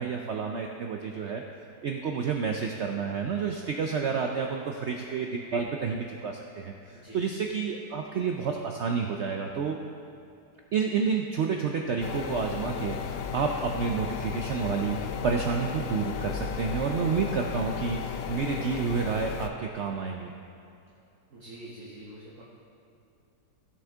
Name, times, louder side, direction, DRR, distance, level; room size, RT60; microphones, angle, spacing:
voice 1, 0.0-1.4 1.8-9.8 10.7-20.3, right 6 dB, 85° right, 2 dB, 0.6 m, -30 dB
voice 2, 6.9-7.2 21.3-22.4, right 1 dB, 50° right, -5 dB, 1.4 m, -45 dB
sound 1, 12.0-19.5, left 7 dB, 70° left, 0.8 m, -34 dB
14.5 x 6.4 x 3.5 m, 2.7 s
omnidirectional pair, 1.8 m